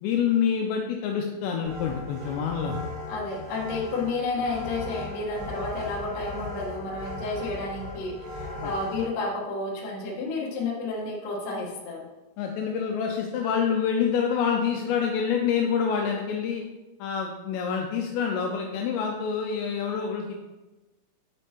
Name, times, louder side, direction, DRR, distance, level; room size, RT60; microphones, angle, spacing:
voice 1, 0.0-2.8 8.6-8.7 12.4-16.6 17.0-20.5, left 7 dB, 85° left, 2 dB, 2.7 m, -27 dB
sound 1, 1.6-9.1, left 2 dB, 70° right, 4.0 m, -37 dB
voice 2, 3.1-12.1, left 3 dB, 65° left, -3 dB, 2.3 m, -31 dB
8.2 x 5.3 x 2.9 m, 1.1 s
omnidirectional pair, 5.2 m